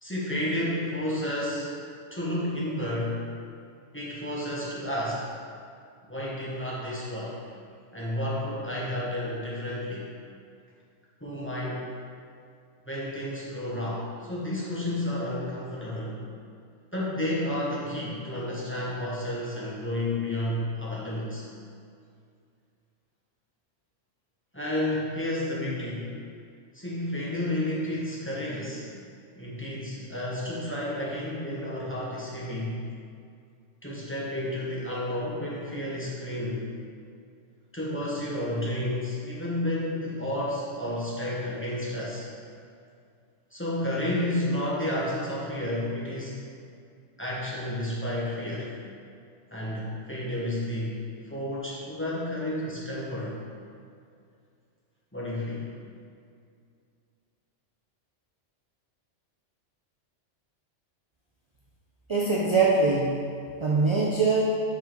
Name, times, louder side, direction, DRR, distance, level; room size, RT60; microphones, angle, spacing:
voice 1, 0.0-1.7 2.1-3.3 3.9-5.3 6.1-7.4 7.9-10.1 11.2-11.9 12.9-16.2 16.9-21.4 24.5-26.1 26.7-28.9 29.4-32.8 33.8-36.6 37.7-42.3 43.5-46.4 47.2-48.7 49.5-51.0 51.3-53.4 55.1-55.7, left 1 dB, 10° left, -7 dB, 1.1 m, -31 dB
voice 2, 62.1-63.2 63.6-64.4, right 4 dB, 40° right, -4 dB, 0.4 m, -22 dB
5.4 x 4.9 x 4.5 m, 2.3 s
omnidirectional pair, 1.3 m